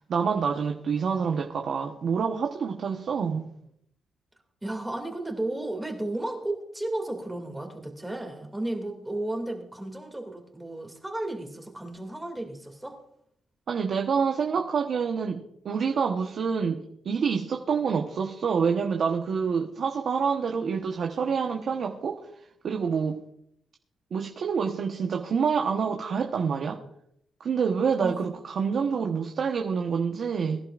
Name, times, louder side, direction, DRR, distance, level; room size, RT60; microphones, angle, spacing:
voice 1, 0.0-3.5 13.7-22.2 22.6-23.2 24.1-26.8 27.4-30.6, right 6 dB, 60° right, 1.1 m, -27 dB
voice 2, 4.6-13.0 28.0-28.2 28.7-28.8, right 1 dB, 10° right, 2.4 m, -33 dB
22.5 x 11.5 x 2.5 m
cardioid pair, 95°, 0 cm